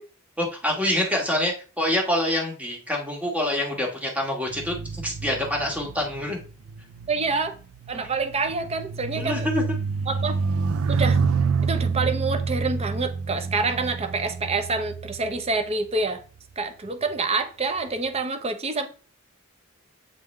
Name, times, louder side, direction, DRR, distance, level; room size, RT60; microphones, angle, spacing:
voice 1, 0.4-6.4 7.9-8.1 9.1-9.6, left 1 dB, 5° right, 1.5 m, -26 dB
sound 1, 4.5-16.1 16.9-17.2, right 5 dB, 75° right, 0.4 m, -28 dB
voice 2, 7.1-7.5 7.9-9.5 10.1-10.4 10.9-11.2 11.6-16.2 16.6-18.9, right 3 dB, 30° right, 0.7 m, -27 dB
8.1 x 3.6 x 3.2 m
head